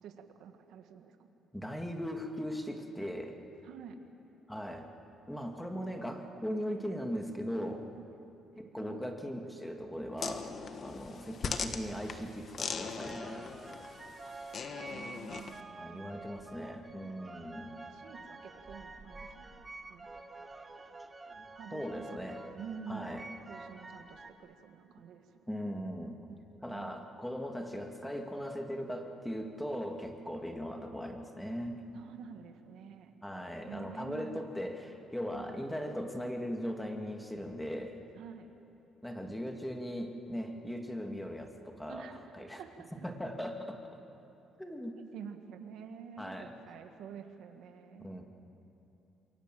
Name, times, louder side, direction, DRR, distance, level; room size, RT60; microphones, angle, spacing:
voice 1, 0.0-1.1 3.6-4.0 8.5-9.0 14.2-14.3 14.9-16.1 16.7-16.8 17.9-19.6 19.9-20.1 21.5-22.3 22.5-23.2 23.5-25.2 26.3-26.4 26.7-27.0 31.9-33.1 33.7-34.4 35.3-35.6 38.1-38.5 41.9-42.9 45.0-48.1, right 7 dB, 75° right, 6 dB, 1.8 m, -48 dB
voice 2, 1.5-3.3 4.5-4.9 5.3-7.9 8.6-13.5 15.8-17.7 21.7-22.4 22.9-23.3 25.5-26.2 26.6-31.8 33.2-38.0 39.0-42.6 43.0-43.9 44.6-45.0 46.2-46.5 48.0-48.3, equal, 5° left, 3 dB, 2.2 m, -39 dB
sound 1, 10.2-15.6, left 5 dB, 45° left, 1.4 m, -40 dB
sound 2, 13.0-24.3, right 3 dB, 20° right, 1.4 m, -49 dB
28.0 x 23.0 x 7.8 m, 2.9 s
cardioid pair, 125°, 0 cm